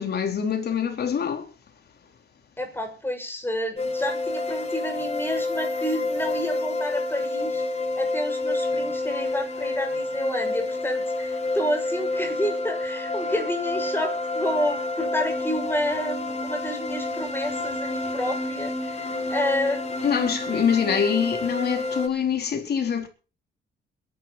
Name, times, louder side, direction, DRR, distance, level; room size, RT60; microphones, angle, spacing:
voice 1, 0.0-1.5 20.0-23.1, left 7 dB, 55° left, 4.2 m, -24 dB
voice 2, 2.6-7.6 8.0-20.1, left 1 dB, 10° left, 7.2 m, -29 dB
sound 1, 3.8-22.1, left 2 dB, 35° left, 3.6 m, -29 dB
21.5 x 12.0 x 4.4 m
cardioid pair, 90°, 20 cm